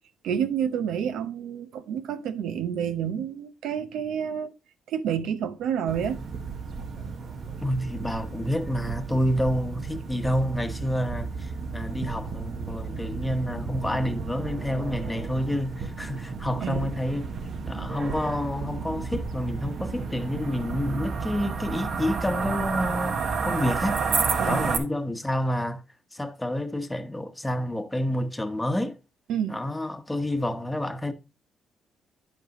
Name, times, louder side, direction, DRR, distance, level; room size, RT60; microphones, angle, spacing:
voice 1, 0.2-4.5 4.9-6.2 16.6-16.9 24.4-24.7 29.3-29.6, right 8 dB, 80° right, 0.8 m, -29 dB
sound 1, 5.9-24.8, right 5 dB, 55° right, 1.2 m, -32 dB
voice 2, 7.6-17.3 17.7-24.0 24.4-25.8 26.1-29.0 29.5-31.1, left 1 dB, 10° left, 1.0 m, -29 dB
12.0 x 5.3 x 3.0 m
cardioid pair, 90°, 0 cm